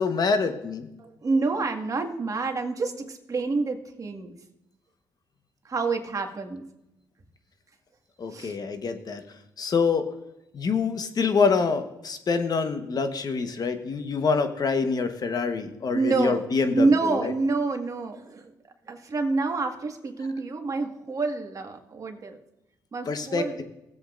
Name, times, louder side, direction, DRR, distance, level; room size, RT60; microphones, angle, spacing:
voice 1, 0.0-0.9 8.2-9.2 9.6-10.1 10.5-17.3 23.1-23.6, left 5 dB, 50° left, 8 dB, 1.2 m, -26 dB
voice 2, 1.0-4.3 5.7-6.6 8.3-8.6 15.9-16.4 16.7-18.5 18.9-22.4 22.9-23.6, right 3 dB, 40° right, 4 dB, 1.8 m, -27 dB
17.0 x 7.9 x 2.5 m, 0.88 s
supercardioid pair, 65°, 9 cm